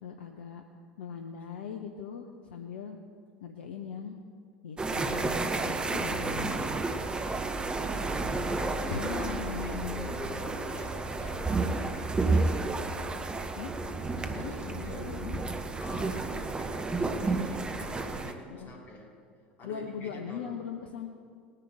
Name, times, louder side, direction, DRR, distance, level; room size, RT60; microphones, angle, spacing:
voice 1, 0.0-0.6 1.0-3.0 3.4-4.2 4.6-7.5 8.9-10.1 13.6-13.7 14.3-15.4 18.5-18.7 19.6-21.1, left 7 dB, 60° left, 4 dB, 0.8 m, -40 dB
sound 1, 4.8-18.3, right 3 dB, 15° right, 0.9 m, -31 dB
voice 2, 7.0-12.3 14.2-19.1 19.6-20.6, left 1 dB, 35° left, -2 dB, 3.5 m, -46 dB
19.0 x 9.9 x 5.0 m, 2.2 s
figure-of-eight pair, 75°, 6 cm